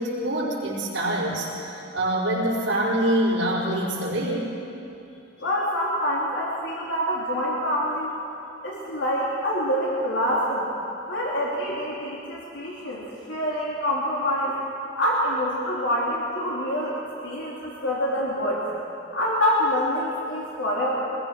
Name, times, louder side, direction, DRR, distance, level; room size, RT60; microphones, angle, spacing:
voice 1, 0.0-4.5, right 1 dB, 85° right, -9 dB, 4.6 m, -25 dB
voice 2, 5.4-8.1 8.6-10.7 11.1-14.6 14.9-17.0 17.2-18.6 19.1-21.0, equal, 75° left, -5 dB, 3.0 m, -26 dB
24.0 x 20.0 x 6.1 m, 2.9 s
head